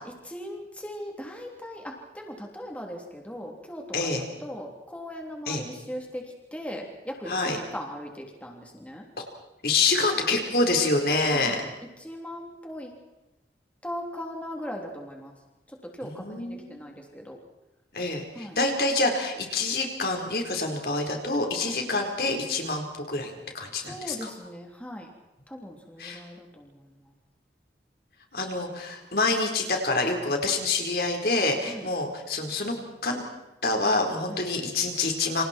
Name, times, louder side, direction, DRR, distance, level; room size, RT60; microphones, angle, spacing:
voice 1, 0.2-6.2 6.5-9.0 10.0-10.4 11.3-11.6 12.0-12.9 13.8-15.3 15.8-17.4 18.3-18.6 21.6-21.8 23.8-25.1 25.5-27.1 31.7-31.9 34.3-34.4, equal, 10° left, 0 dB, 3.4 m, -39 dB
voice 2, 3.9-4.3 5.5-5.6 7.3-7.6 9.6-11.6 16.0-16.9 17.9-24.3 26.0-26.2 28.3-32.8 33.0-33.3 33.6-35.4, left 3 dB, 60° left, 3 dB, 4.4 m, -27 dB
29.5 x 27.5 x 4.6 m, 1.0 s
head